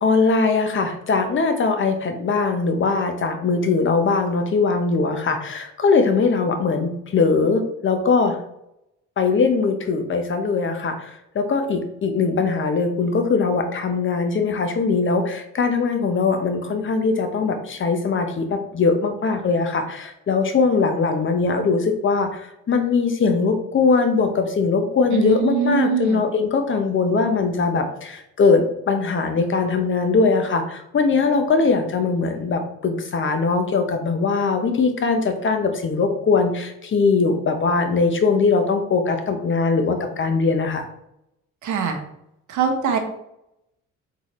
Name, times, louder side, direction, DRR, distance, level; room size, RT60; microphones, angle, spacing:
voice 1, 0.0-8.4 9.2-11.1 11.3-40.8, left 4 dB, 40° left, 6 dB, 0.8 m, -21 dB
voice 2, 25.1-26.2 41.6-42.0 42.5-43.0, right 7 dB, 75° right, 4 dB, 1.0 m, -22 dB
4.0 x 3.8 x 3.1 m, 0.81 s
cardioid pair, 90°, 30 cm